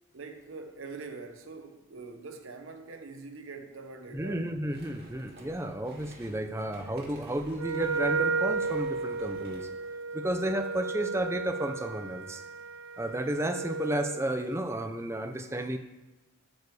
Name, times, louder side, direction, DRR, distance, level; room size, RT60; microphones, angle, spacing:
voice 1, 0.1-4.4, right 4 dB, 70° right, 1.0 m, -44 dB
voice 2, 4.1-9.7 10.1-12.4 13.0-15.8, right 1 dB, 15° right, 0.6 m, -32 dB
sound 1, 4.7-9.8, right 1 dB, 50° right, 2.1 m, -52 dB
Wind instrument woodwind instrument, 7.6-14.2, right 4 dB, 85° right, 0.5 m, -33 dB
11.5 x 4.8 x 4.8 m
head